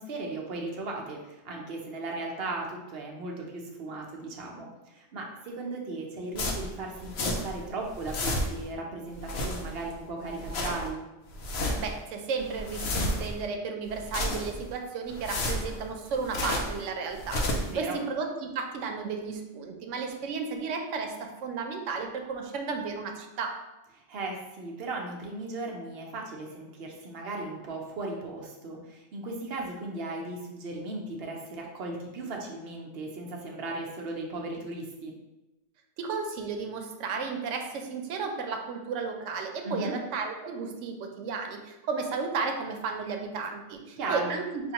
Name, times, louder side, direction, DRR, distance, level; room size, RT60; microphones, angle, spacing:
voice 1, 0.0-11.0 17.7-18.0 24.0-35.1 39.6-39.9 44.0-44.3, right 2 dB, 60° right, 0 dB, 0.9 m, -37 dB
sound 1, 6.4-7.6 7.9-8.7 9.1-9.9 10.3-10.9 11.3-12.0 12.4-13.4 13.9-14.7 15.1-16.8 17.1-17.8, left 1 dB, 65° left, 0.9 m, -32 dB
voice 2, 11.8-23.6 36.0-44.7, right 5 dB, 90° right, 4 dB, 0.9 m, -33 dB
5.5 x 2.5 x 2.8 m, 1.0 s
omnidirectional pair, 1.2 m